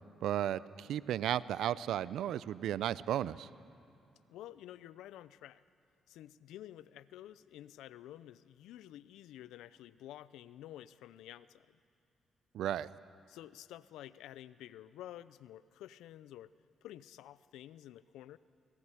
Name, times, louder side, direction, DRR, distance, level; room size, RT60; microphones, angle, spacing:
voice 1, 0.2-3.5 12.5-12.9, right 11 dB, 75° right, 18 dB, 0.6 m, -34 dB
voice 2, 4.3-5.6 6.1-11.8 13.3-16.5 16.8-18.4, left 13 dB, 80° left, 17 dB, 0.6 m, -51 dB
27.0 x 19.5 x 10.0 m, 2.6 s
hypercardioid pair, 50°, 0 cm